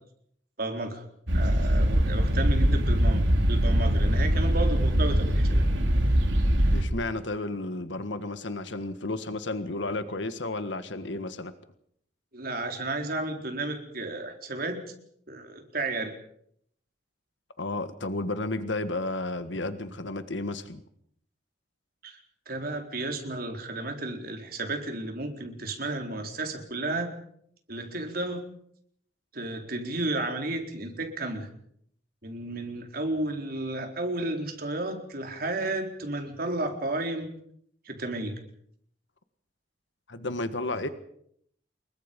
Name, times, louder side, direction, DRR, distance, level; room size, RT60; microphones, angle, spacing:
voice 1, 0.6-1.0 1.3-5.7 12.3-14.9 15.3-16.1 22.0-22.2 22.5-27.1 27.7-28.4 29.3-31.5 32.2-37.3 37.8-38.3, right 2 dB, 55° right, 4 dB, 4.1 m, -32 dB
sound 1, 1.3-6.8, equal, 80° right, 3.4 m, -22 dB
voice 2, 6.7-11.5 17.6-20.8 40.1-40.9, left 2 dB, 85° left, 10 dB, 1.7 m, -32 dB
28.5 x 22.5 x 5.4 m, 0.69 s
head